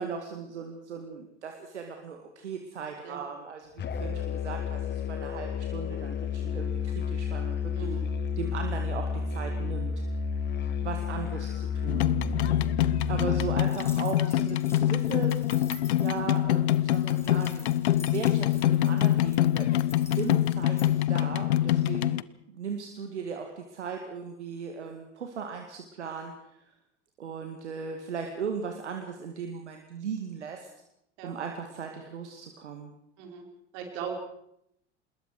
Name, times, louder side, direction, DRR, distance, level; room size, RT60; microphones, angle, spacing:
voice 1, 0.0-7.9 8.4-9.9 10.8-12.2 13.1-15.4 15.9-17.7 18.0-19.9 20.2-22.2 22.5-26.3 27.2-30.7 31.2-32.9, right 6 dB, 75° right, 4 dB, 2.2 m, -37 dB
Musical instrument, 3.8-13.7, left 5 dB, 30° left, 1.6 m, -31 dB
voice 2, 7.7-8.0 11.1-11.2 31.2-31.4 33.2-33.4 33.7-34.1, right 7 dB, 55° right, 2 dB, 5.2 m, -38 dB
sound 1, 11.9-22.2, left 13 dB, 65° left, 0.7 m, -25 dB
sound 2, 13.6-20.9, left 1 dB, 5° left, 4.6 m, -49 dB
26.5 x 21.0 x 4.9 m, 0.78 s
figure-of-eight pair, 75°, 35 cm